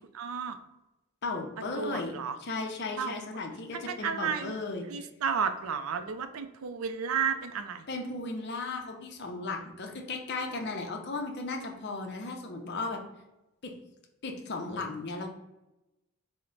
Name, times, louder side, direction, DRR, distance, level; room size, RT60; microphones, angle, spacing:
voice 1, 0.1-0.6 1.8-2.4 3.0-3.4 3.7-4.5 4.8-7.9, right 6 dB, 70° right, 9 dB, 0.4 m, -32 dB
voice 2, 1.2-2.1 2.4-4.9 7.9-13.0 13.6-13.7 14.2-15.3, left 3 dB, 50° left, 3 dB, 0.6 m, -35 dB
4.4 x 2.1 x 3.8 m, 0.96 s
head